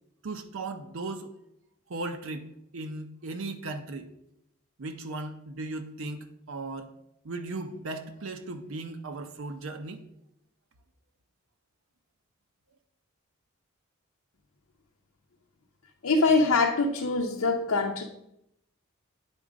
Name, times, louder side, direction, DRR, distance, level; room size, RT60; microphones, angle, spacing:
voice 1, 0.2-1.3 1.9-2.4 2.7-4.1 4.8-6.9 7.2-10.0, right 2 dB, 65° right, 7 dB, 0.6 m, -37 dB
voice 2, 16.0-18.0, left 3 dB, 85° left, 0 dB, 0.8 m, -24 dB
9.7 x 3.7 x 5.0 m, 0.80 s
head